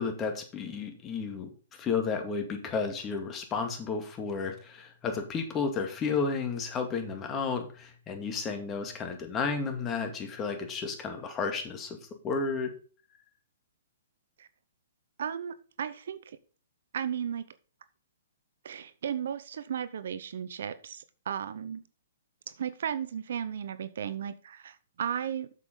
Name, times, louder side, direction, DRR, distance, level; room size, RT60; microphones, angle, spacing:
voice 1, 0.0-12.0 12.2-12.7, left 5 dB, 25° left, 2.2 m, -32 dB
voice 2, 15.2-16.4 16.9-17.4 18.6-21.8 22.5-25.5, right 8 dB, 65° right, 0.7 m, -35 dB
8.4 x 7.0 x 3.9 m
hypercardioid pair, 125°, 0 cm